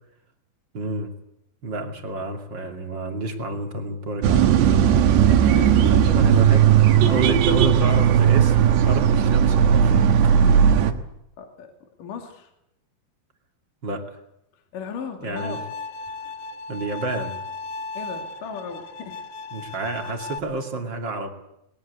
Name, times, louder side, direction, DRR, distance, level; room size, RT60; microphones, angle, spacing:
voice 1, 0.7-1.1 1.6-4.5 5.8-6.7 7.0-10.1 10.5-10.6 13.8-14.1 15.2-15.6 16.7-17.3 19.5-21.3, right 2 dB, 35° right, 4 dB, 2.4 m, -30 dB
Bus closes doors and leave the place, 4.2-10.9, right 8 dB, 75° right, 3.4 m, -16 dB
voice 2, 4.3-4.8 5.5-6.3 7.0-7.3 11.4-11.7 12.0-12.5 14.7-15.6 18.0-19.2, left 6 dB, 55° left, 4 dB, 3.8 m, -37 dB
Bowed string instrument, 15.4-20.4, left 3 dB, 75° left, 3.6 m, -36 dB
21.5 x 21.0 x 8.3 m, 0.82 s
omnidirectional pair, 5.0 m